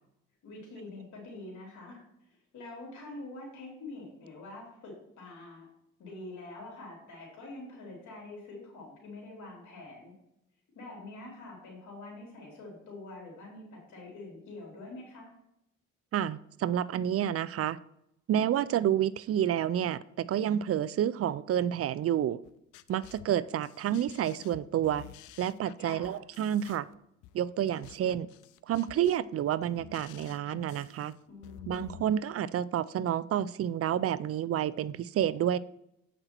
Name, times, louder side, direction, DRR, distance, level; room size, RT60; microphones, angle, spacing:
voice 1, 0.4-5.7 6.0-10.1 10.7-15.3 25.8-26.2 31.3-32.1, left 2 dB, 75° left, 3.4 m, -46 dB
voice 2, 16.1-17.8 18.3-22.4 22.9-25.1 25.4-26.9 27.3-28.3 28.7-31.1 31.7-35.6, right 10 dB, 50° right, 0.4 m, -29 dB
sound 1, 22.4-32.0, left 13 dB, 90° left, 0.5 m, -52 dB
7.9 x 6.0 x 4.4 m
cardioid pair, 90°, 30 cm